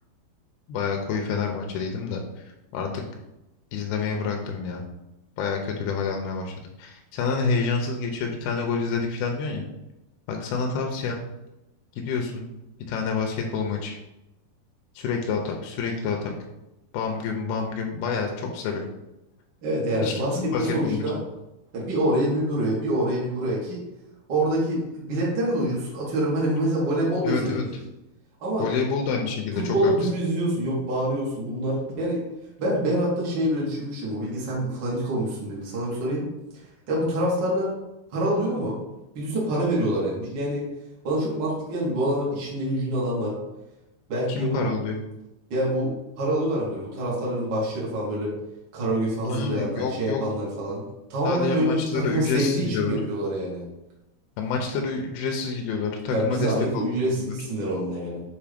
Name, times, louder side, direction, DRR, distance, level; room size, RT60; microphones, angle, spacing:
voice 1, 0.7-2.4 2.7-2.9 3.7-4.8 5.4-9.6 10.3-11.2 12.0-12.5 12.9-14.0 15.0-16.3 16.9-18.8 20.0-21.0 27.2-27.6 28.6-29.9 44.3-45.0 49.3-50.2 51.2-52.9 54.4-57.3, left 5 dB, 80° left, 2 dB, 2.5 m, -28 dB
voice 2, 19.6-21.2 21.7-23.8 24.3-27.7 28.4-28.7 29.5-32.2 32.6-36.3 36.9-37.7 38.1-38.7 39.1-40.7 41.0-43.4 44.1-44.7 45.5-48.4 48.7-50.8 51.1-53.6 56.1-58.2, right 1 dB, 55° right, -5 dB, 1.2 m, -26 dB
6.8 x 2.7 x 5.1 m, 0.94 s
omnidirectional pair, 4.5 m